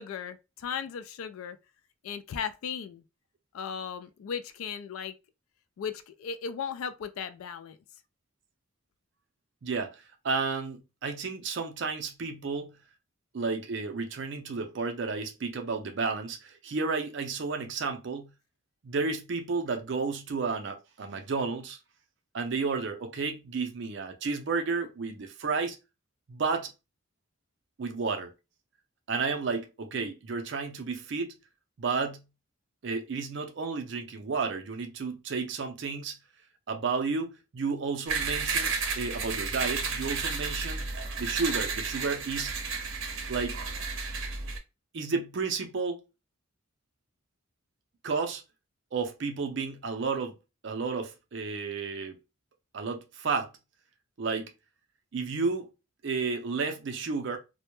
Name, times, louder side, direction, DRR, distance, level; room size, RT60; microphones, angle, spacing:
voice 1, 0.0-1.6 2.0-3.0 3.5-5.1 5.8-7.8, left 7 dB, 80° left, 0.3 m, -36 dB
voice 2, 9.6-12.7 13.3-18.3 18.8-21.8 22.3-25.8 26.3-26.7 27.8-28.3 29.1-31.4 31.8-32.2 32.8-36.2 36.7-40.8 41.2-42.5 43.3-43.6 44.9-46.0 48.0-48.4 48.9-50.4 50.6-52.2 52.7-53.5 54.2-54.5 55.1-55.7 56.0-57.4, right 4 dB, 55° right, 0.4 m, -32 dB
sound 1, 38.1-44.6, right 5 dB, 80° right, 0.8 m, -32 dB
2.2 x 2.0 x 2.9 m
head